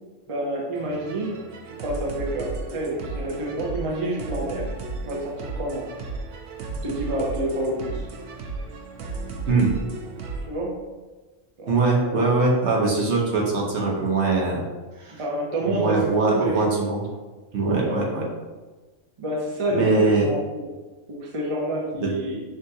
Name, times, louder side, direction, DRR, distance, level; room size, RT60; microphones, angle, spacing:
voice 1, 0.3-1.4 1.8-4.7 5.0-5.8 6.8-8.0 10.5-10.7 11.6-11.7 15.2-16.0 16.3-16.6 17.8-18.0 19.2-20.6 21.1-22.4, right 1 dB, 35° right, -3 dB, 0.6 m, -28 dB
sound 1, 0.7-10.5, right 3 dB, 85° right, 1.0 m, -34 dB
voice 2, 11.7-14.6 15.0-15.2 15.6-17.1 17.5-18.2 19.7-20.3 22.0-22.1, right 3 dB, 60° right, -2 dB, 1.1 m, -22 dB
6.2 x 2.5 x 2.7 m, 1.3 s
omnidirectional pair, 1.4 m